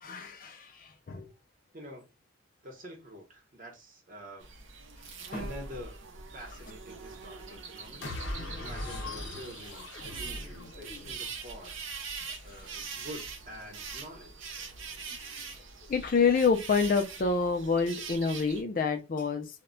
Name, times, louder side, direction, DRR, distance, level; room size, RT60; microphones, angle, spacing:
voice 1, 0.0-1.3 5.3-5.4 12.2-12.4 15.4-15.5 15.9-19.5, left 5 dB, 40° left, 0.3 m, -28 dB
voice 2, 1.7-2.1 2.6-4.5 5.3-11.7 12.4-14.5, equal, 40° right, 0.8 m, -47 dB
sound 1, 4.4-18.6, right 5 dB, 70° right, 0.6 m, -43 dB
sound 2, 8.0-11.4, left 2 dB, 60° left, 0.7 m, -40 dB
2.2 x 2.1 x 3.7 m
head